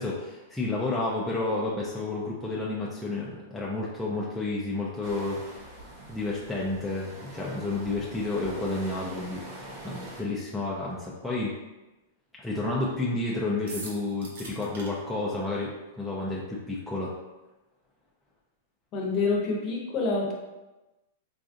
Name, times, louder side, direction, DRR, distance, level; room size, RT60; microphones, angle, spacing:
voice 1, 0.0-5.8 6.1-9.4 9.8-11.5 12.4-15.7 16.0-17.1, left 2 dB, 5° left, -7 dB, 0.4 m, -31 dB
sound 1, 5.0-10.2, right 1 dB, 40° right, 1.1 m, -44 dB
sound 2, 13.7-14.9, right 2 dB, 80° right, 0.9 m, -41 dB
voice 2, 18.9-20.3, left 3 dB, 35° left, -1 dB, 0.8 m, -27 dB
4.0 x 2.5 x 2.5 m, 1.1 s
hypercardioid pair, 135°, 0 cm